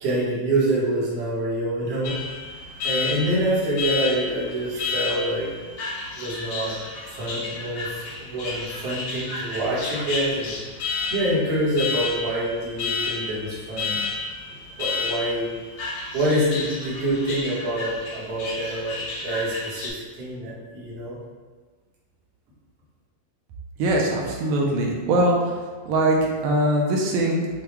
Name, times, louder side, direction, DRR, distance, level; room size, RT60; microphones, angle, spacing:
voice 1, 0.0-2.2 2.8-5.5 6.1-6.8 7.1-10.6 11.1-14.0 14.8-15.5 16.1-21.2, right 1 dB, 60° right, -7 dB, 1.9 m, -26 dB
Alarm, 2.0-19.9, left 4 dB, 75° left, 1.3 m, -31 dB
voice 2, 23.8-25.6 25.9-27.6, right 1 dB, 80° right, -1 dB, 2.1 m, -22 dB
6.7 x 2.3 x 3.1 m, 1.4 s
omnidirectional pair, 3.4 m